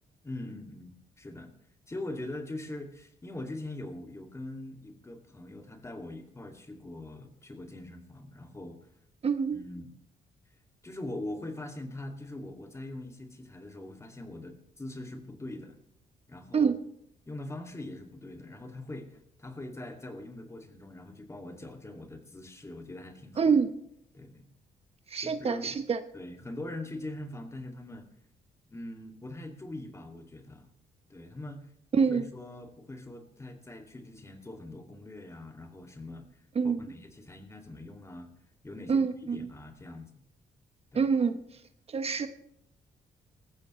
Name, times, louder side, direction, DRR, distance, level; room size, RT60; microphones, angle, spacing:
voice 1, 0.2-1.5 1.9-8.8 9.5-9.9 10.8-15.8 16.3-16.7 17.3-23.5 24.1-24.5 25.2-25.8 26.1-28.1 28.7-30.7 31.1-31.6 32.0-36.3 36.6-38.3 38.6-40.1 40.9-41.0, left 1 dB, 20° left, 4 dB, 2.4 m, -42 dB
voice 2, 9.2-9.6 16.5-16.7 23.4-23.7 25.1-26.0 31.9-32.3 36.5-36.8 38.9-39.5 40.9-41.4 41.9-42.3, right 5 dB, 45° right, 9 dB, 1.0 m, -26 dB
19.0 x 14.5 x 3.2 m, 0.74 s
cardioid pair, 100°, 15 cm